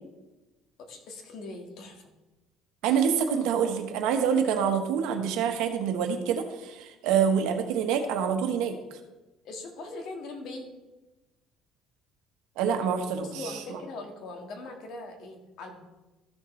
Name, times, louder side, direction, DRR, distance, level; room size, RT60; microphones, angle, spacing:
voice 1, 0.8-2.1 9.4-10.7 13.2-15.8, left 2 dB, 65° left, 3 dB, 1.8 m, -41 dB
voice 2, 2.8-8.7 12.6-13.4 13.7-13.8, right 7 dB, 85° right, 6 dB, 1.2 m, -26 dB
13.5 x 6.5 x 3.2 m, 1.1 s
cardioid pair, 130°, 0 cm